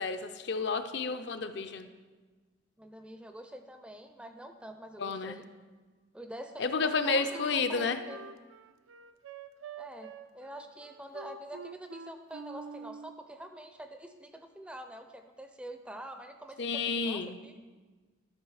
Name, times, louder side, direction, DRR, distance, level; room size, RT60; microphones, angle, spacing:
voice 1, 0.0-1.9 5.0-5.4 6.6-8.0 16.6-17.4, left 4 dB, 55° left, 8 dB, 0.5 m, -31 dB
voice 2, 2.8-5.5 6.1-8.2 9.8-17.6, right 1 dB, 5° right, 7 dB, 0.4 m, -46 dB
Wind instrument woodwind instrument, 6.9-13.2, right 5 dB, 80° right, 0.4 m, -46 dB
12.5 x 6.1 x 4.8 m, 1.3 s
head